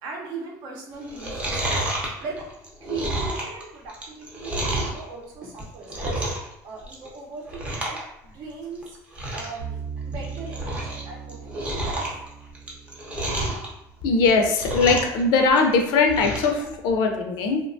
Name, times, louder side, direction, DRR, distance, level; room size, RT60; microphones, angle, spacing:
voice 1, 0.0-2.5 2.8-6.2 6.6-9.8 10.0-12.2, right 4 dB, 65° right, -1 dB, 0.7 m, -39 dB
Chewing mastication, 1.0-5.0 5.5-6.5 6.8-7.2 7.5-8.0 8.3-8.4 8.8-8.9 9.1-9.6 10.0-11.0 11.3-13.7 14.1-15.2 15.5-16.5 16.9-17.0, right 1 dB, 15° right, 0.6 m, -29 dB
sound 1, 9.6-14.7, right 6 dB, 80° right, 0.9 m, -39 dB
voice 2, 14.0-17.6, left 4 dB, 70° left, 3 dB, 0.4 m, -20 dB
2.8 x 2.2 x 2.5 m, 0.84 s
cardioid pair, 155°, 8 cm